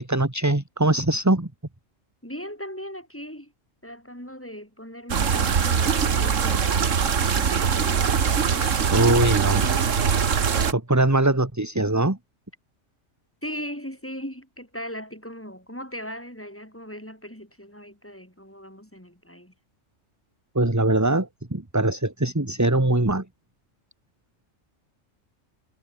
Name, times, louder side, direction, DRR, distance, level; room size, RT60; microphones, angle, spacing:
voice 1, 0.0-1.5 8.9-9.7 10.7-12.2 20.6-23.2, right 2 dB, 15° right, 1.8 m, -22 dB
voice 2, 2.2-3.5 3.8-8.1 13.4-19.5, equal, 10° left, 6.4 m, -38 dB
sound 1, 5.1-10.7, right 6 dB, 75° right, 1.8 m, -22 dB
omnidirectional pair, 1.3 m